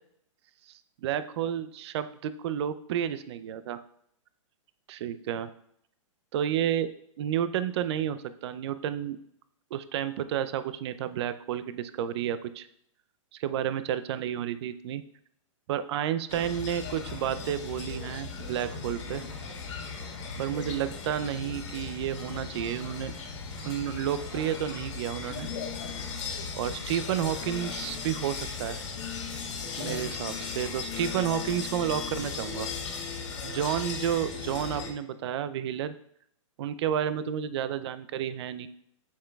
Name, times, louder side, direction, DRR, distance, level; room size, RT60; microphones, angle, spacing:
voice 1, 1.0-3.8 4.9-5.5 6.3-6.9 7.2-9.2 9.7-12.7 13.3-15.0 15.7-19.2 20.4-23.1 23.6-25.5 26.6-28.8 29.8-32.7 33.4-35.9 36.6-38.7, right 10 dB, 55° right, 13 dB, 0.5 m, -31 dB
sound 1, 16.3-34.9, left 5 dB, 60° left, 1.8 m, -37 dB
7.2 x 6.9 x 2.3 m, 0.70 s
hypercardioid pair, 135°, 17 cm